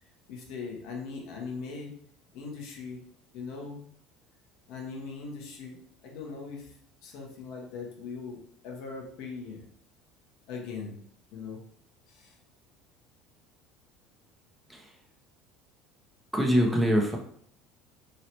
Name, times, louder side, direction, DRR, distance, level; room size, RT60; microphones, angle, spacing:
voice 1, 0.3-1.9 2.3-3.0 3.3-3.8 4.7-6.7 7.0-9.6 10.5-11.0 11.3-11.6 12.1-12.4, left 4 dB, 60° left, 0 dB, 0.9 m, -40 dB
voice 2, 16.3-17.2, equal, 5° right, 0 dB, 0.8 m, -24 dB
3.0 x 2.9 x 2.9 m, 0.63 s
hypercardioid pair, 65°, 0 cm